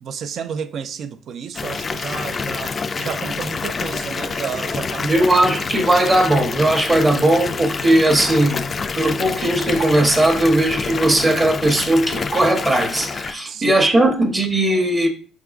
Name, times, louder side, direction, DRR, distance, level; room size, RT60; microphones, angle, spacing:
voice 1, 0.0-5.1 13.4-13.8, right 7 dB, 60° right, 0.4 m, -31 dB
Water tap faucet / Bathtub (filling or washing) / Fill (with liquid), 1.5-13.3, left 5 dB, 40° left, 0.3 m, -27 dB
voice 2, 5.0-8.6 8.9-15.1, right 1 dB, 25° right, 0.8 m, -18 dB
4.9 x 3.5 x 2.4 m
supercardioid pair, 75°, 0 cm